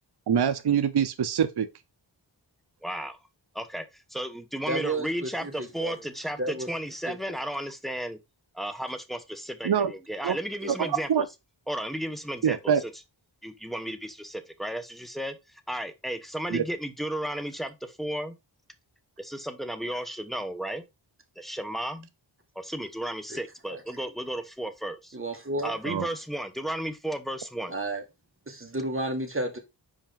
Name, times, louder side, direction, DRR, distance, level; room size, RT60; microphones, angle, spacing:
voice 1, 0.3-1.7 9.6-9.9 10.2-10.4 10.7-11.2 12.4-12.8 16.5-16.6 25.8-26.1, right 8 dB, 55° right, 0.7 m, -24 dB
voice 2, 2.8-3.2 3.5-8.2 8.5-11.3 11.7-12.9 13.4-18.3 19.2-20.8 21.4-22.1 22.5-25.2 25.6-27.8, right 1 dB, ahead, 1.0 m, -34 dB
voice 3, 4.7-6.0 6.4-6.7 7.1-7.2 10.6-10.8 23.3-23.4 23.7-23.8 25.1-25.7 27.7-28.0 28.5-29.6, right 2 dB, 25° right, 1.8 m, -32 dB
5.1 x 5.0 x 3.7 m
wide cardioid pair, 50°, 46 cm